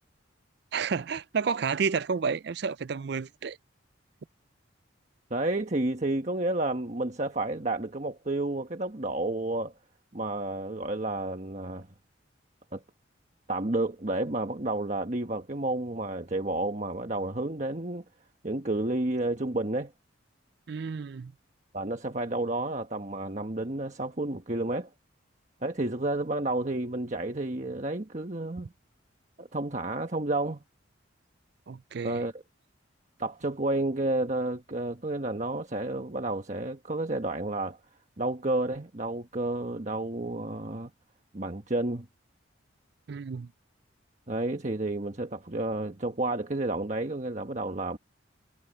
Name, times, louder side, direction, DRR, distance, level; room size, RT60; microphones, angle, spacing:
voice 1, 0.7-3.6 20.7-21.3 31.7-32.2 43.1-43.5, right 5 dB, 55° right, 0.4 m, -31 dB
voice 2, 5.3-9.7 10.1-11.9 12.7-12.8 13.5-18.0 18.4-19.9 21.7-24.9 25.6-28.7 29.4-30.6 32.0-32.3 33.2-37.8 38.2-40.9 41.3-42.1 44.3-48.0, right 2 dB, 35° right, 1.3 m, -31 dB
head